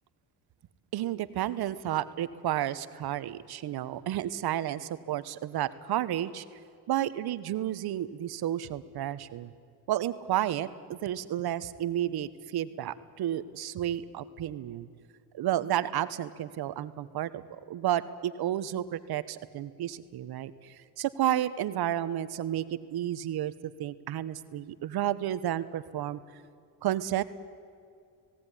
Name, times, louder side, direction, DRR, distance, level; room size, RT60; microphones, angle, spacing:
voice 1, 0.9-6.4 6.9-9.5 9.9-14.9 15.3-22.6 22.9-23.5 23.8-26.2 26.8-27.2, right 12 dB, 65° right, 14 dB, 1.2 m, -31 dB
18.0 x 17.5 x 9.9 m, 2.3 s
cardioid pair, 90°, 41 cm